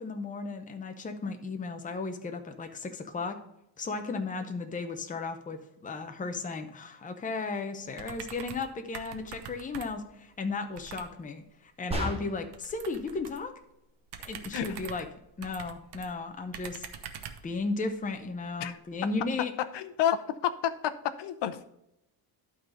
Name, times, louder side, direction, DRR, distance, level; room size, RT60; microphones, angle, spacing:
voice 1, 0.0-3.4 3.8-13.5 14.2-15.0 15.4-16.9 17.4-19.5, left 3 dB, 15° left, 5 dB, 0.7 m, -35 dB
sound 1, 7.9-8.7 8.9-10.1 10.8-11.1 12.5-13.5 14.1-16.1 16.5-17.5, right 8 dB, 55° right, 1.0 m, -44 dB
sound 2, 11.9-12.6, equal, 10° right, 1.2 m, -33 dB
voice 2, 19.7-20.9 21.2-21.6, left 10 dB, 60° left, 12 dB, 0.8 m, -30 dB
11.5 x 4.1 x 5.1 m, 0.81 s
cardioid pair, 160°, 48 cm